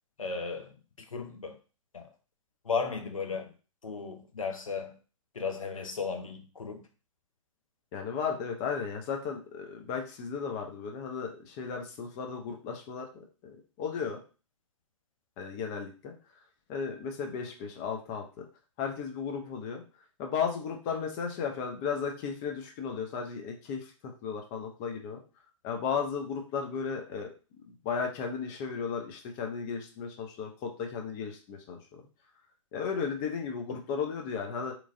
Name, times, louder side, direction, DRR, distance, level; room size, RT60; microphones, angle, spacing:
voice 1, 0.2-1.6 1.9-2.1 2.6-3.5 3.8-5.0 5.3-6.9, left 5 dB, 80° left, 0.6 m, -35 dB
voice 2, 7.9-13.1 13.4-14.2 15.4-16.1 16.7-18.5 18.8-19.8 20.2-25.2 25.6-27.3 27.8-32.0 32.7-34.7, left 6 dB, 35° left, 0.6 m, -35 dB
3.0 x 2.4 x 2.5 m
figure-of-eight pair, 110°, 17 cm